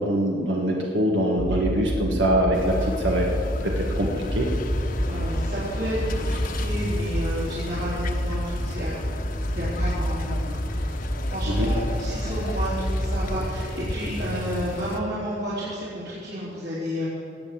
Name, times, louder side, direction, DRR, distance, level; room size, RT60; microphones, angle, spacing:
voice 1, 0.0-3.3 3.6-4.5 11.5-11.7, right 1 dB, 90° right, -1 dB, 1.7 m, -23 dB
sound 1, 1.4-13.4, equal, 20° left, 1.2 m, -28 dB
sound 2, 2.5-15.0, left 2 dB, 50° left, 1.0 m, -35 dB
voice 2, 5.1-8.9 9.5-10.6 11.3-17.1, equal, 65° right, -11 dB, 4.2 m, -31 dB
19.0 x 7.9 x 7.1 m, 2.4 s
head